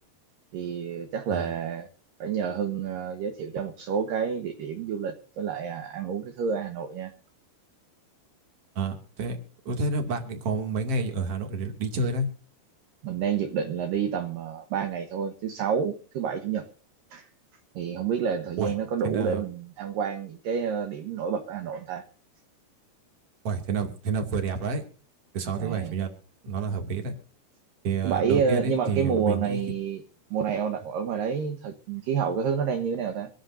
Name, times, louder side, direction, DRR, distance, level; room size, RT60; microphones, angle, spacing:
voice 1, 0.5-1.9 2.2-7.1 13.0-16.7 17.1-17.2 17.8-22.0 25.6-25.9 28.0-30.0 30.3-33.3, right 7 dB, 65° right, 7 dB, 2.6 m, -29 dB
voice 2, 8.7-9.4 9.6-12.3 18.6-18.7 19.0-19.4 23.4-24.8 25.3-26.1 26.4-27.1 27.8-29.6, right 4 dB, 40° right, 4 dB, 3.1 m, -29 dB
25.5 x 11.5 x 2.7 m, 0.41 s
omnidirectional pair, 5.0 m